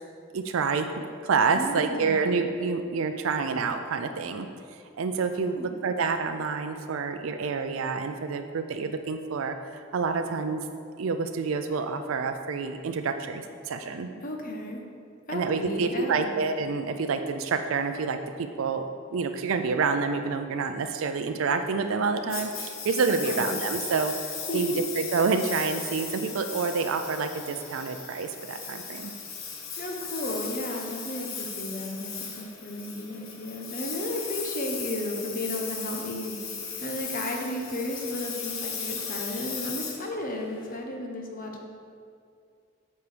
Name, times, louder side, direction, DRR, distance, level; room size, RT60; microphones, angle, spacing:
voice 1, 0.3-0.9 1.2-4.5 5.0-10.6 11.0-14.1 15.3-29.1, right 4 dB, 80° right, 7 dB, 0.4 m, -28 dB
voice 2, 1.5-2.2 5.4-5.7 14.2-14.8 15.3-16.3 23.2-23.6 24.5-24.8 29.8-36.4 36.8-41.7, left 1 dB, 40° left, 1 dB, 1.0 m, -34 dB
Engine, 22.3-40.8, left 5 dB, 90° left, 1.4 m, -37 dB
8.5 x 4.6 x 6.8 m, 2.3 s
head